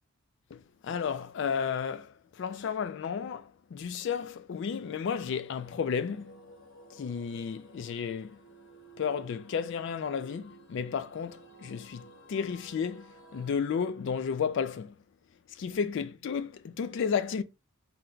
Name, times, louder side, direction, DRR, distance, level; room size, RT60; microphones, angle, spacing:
voice 1, 0.5-6.4 6.9-8.4 9.0-14.9 15.6-17.4, left 6 dB, 55° left, 0.3 m, -33 dB
sound 1, 4.8-13.6, right 2 dB, 70° left, 1.1 m, -54 dB
4.4 x 2.2 x 3.8 m
head